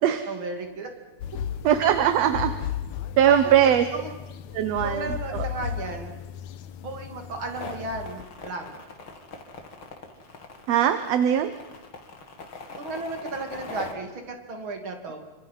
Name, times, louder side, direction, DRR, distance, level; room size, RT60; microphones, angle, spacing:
voice 1, 0.3-0.9 1.3-1.4 3.3-4.1 4.8-6.1 6.8-8.7 12.7-15.2, right 3 dB, 40° right, 4 dB, 3.4 m, -34 dB
sound 1, 1.2-8.2, left 9 dB, 75° left, 2.2 m, -35 dB
voice 2, 1.6-2.5 3.2-3.9 4.5-5.5 10.7-11.5, right 10 dB, 65° right, 10 dB, 2.0 m, -21 dB
sound 2, 7.5-13.9, left 4 dB, 45° left, 3.1 m, -41 dB
29.0 x 25.5 x 5.7 m, 1.1 s
omnidirectional pair, 3.4 m